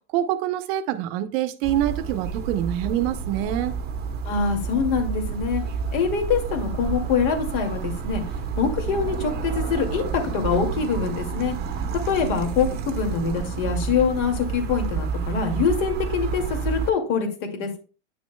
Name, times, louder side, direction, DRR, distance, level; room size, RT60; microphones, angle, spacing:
voice 1, 0.1-3.7, right 12 dB, 55° right, 0.8 m, -25 dB
sound 1, 1.6-16.9, right 5 dB, 30° right, 0.9 m, -29 dB
voice 2, 4.2-5.6 5.9-8.2 8.6-11.5 11.9-17.3 17.5-17.8, left 6 dB, 55° left, 2.2 m, -24 dB
9.6 x 6.2 x 2.2 m
supercardioid pair, 140°, 35 cm